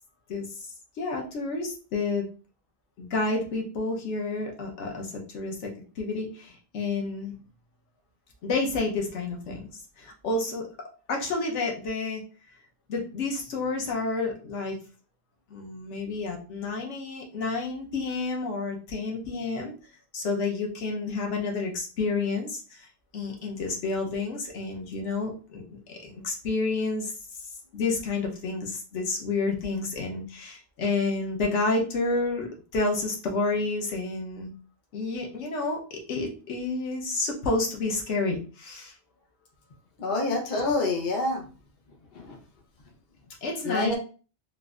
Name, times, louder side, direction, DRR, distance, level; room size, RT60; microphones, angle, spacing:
voice 1, 1.0-2.2 3.0-5.7 6.0-7.3 8.4-10.7 11.1-12.2 12.9-14.8 15.5-19.7 20.1-22.9 23.1-25.6 25.9-27.1 27.7-34.5 34.9-38.9 43.4-43.9, left 3 dB, 90° left, 1 dB, 1.1 m, -30 dB
voice 2, 40.0-41.4 42.1-42.4 43.6-43.9, left 2 dB, 50° left, 2 dB, 0.9 m, -27 dB
3.9 x 2.5 x 2.4 m, 0.37 s
omnidirectional pair, 1.2 m